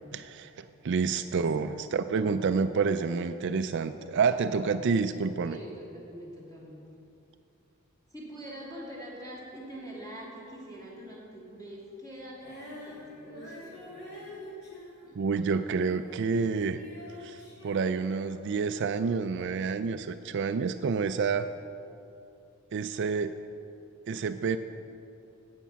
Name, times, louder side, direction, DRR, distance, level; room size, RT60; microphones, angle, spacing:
voice 1, 0.1-5.6 15.2-16.8 17.2-21.5 22.7-23.4 24.1-24.6, right 5 dB, 55° right, 10 dB, 0.4 m, -28 dB
voice 2, 1.1-1.9 5.4-6.9 8.1-14.4 15.0-15.2, right 1 dB, 20° left, -6 dB, 3.1 m, -45 dB
Female singing, 12.4-18.7 19.4-19.5, left 1 dB, 50° left, 2.7 m, -47 dB
13.5 x 8.3 x 5.8 m, 2.7 s
head